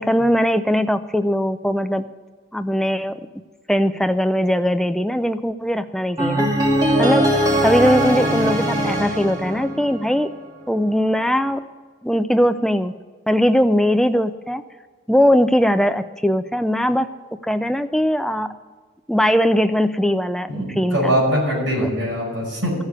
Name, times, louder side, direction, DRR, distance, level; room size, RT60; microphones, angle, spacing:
voice 1, 0.0-2.1 2.5-3.2 3.7-6.5 7.0-7.3 7.6-10.3 10.7-11.7 12.0-12.9 13.3-14.6 15.1-17.1 17.4-18.5 19.1-21.2, equal, ahead, 9 dB, 0.4 m, -20 dB
sound 1, 6.2-10.3, equal, 20° right, 2.3 m, -20 dB
voice 2, 20.5-22.8, equal, 75° right, -5 dB, 5.5 m, -22 dB
14.0 x 6.5 x 9.6 m, 1.3 s
head